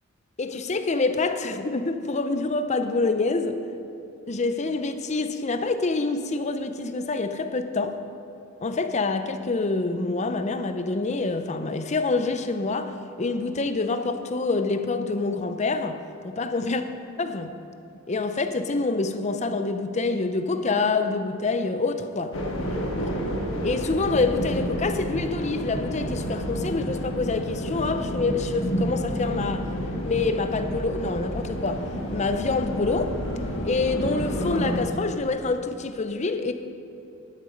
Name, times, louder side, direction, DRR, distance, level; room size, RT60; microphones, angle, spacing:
voice 1, 0.4-3.6 4.3-8.0 8.6-16.8 17.2-17.6 18.1-22.3 23.0-23.1 23.6-29.7 30.1-33.2 33.6-36.5, left 3 dB, 35° left, 0.6 m, -26 dB
sound 1, 22.3-34.8, equal, 80° left, 1.4 m, -30 dB
11.0 x 8.5 x 5.3 m
head